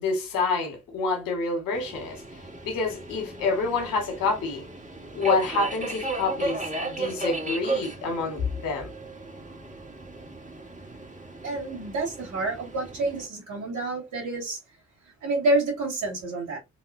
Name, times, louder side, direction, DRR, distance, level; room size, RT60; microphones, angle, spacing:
voice 1, 0.0-2.2 2.6-4.7 5.1-8.9, left 4 dB, 75° left, 2.1 m, -27 dB
Subway metro underground, 1.7-13.3, right 2 dB, 20° right, 2.3 m, -35 dB
voice 2, 11.4-14.6 15.2-16.6, right 2 dB, 60° right, 2.9 m, -28 dB
4.7 x 3.6 x 2.7 m
hypercardioid pair, 40°, 34 cm